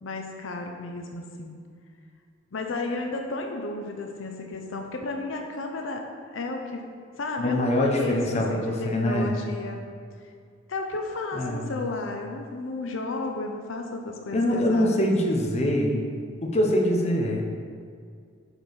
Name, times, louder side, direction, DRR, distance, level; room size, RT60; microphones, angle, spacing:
voice 1, 0.0-1.6 2.5-6.0 6.3-6.8 7.2-9.9 10.7-15.1, left 3 dB, 75° left, 2 dB, 0.6 m, -33 dB
voice 2, 7.4-9.3 11.3-11.8 14.3-16.0 16.4-17.4, left 1 dB, 35° left, 0 dB, 0.8 m, -24 dB
5.2 x 4.4 x 6.0 m, 2.2 s
head